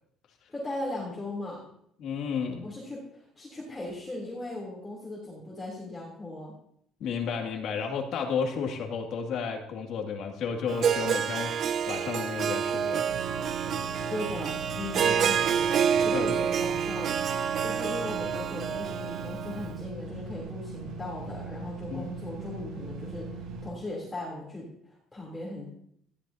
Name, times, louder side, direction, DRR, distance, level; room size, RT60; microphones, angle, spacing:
voice 1, 0.5-1.6 2.6-6.5 14.1-17.2 17.6-25.7, left 2 dB, 10° left, -5 dB, 3.5 m, -38 dB
voice 2, 2.0-2.7 7.0-11.5 11.9-13.1 13.4-13.6 15.0-15.2 16.1-16.3 21.9-22.1, left 6 dB, 50° left, 2 dB, 2.5 m, -32 dB
Harp, 10.7-19.7, right 8 dB, 35° right, 0.5 m, -28 dB
sound 1, 13.1-23.7, right 3 dB, 80° right, 6.4 m, -40 dB
18.5 x 15.0 x 2.9 m, 0.70 s
cardioid pair, 180°, 0 cm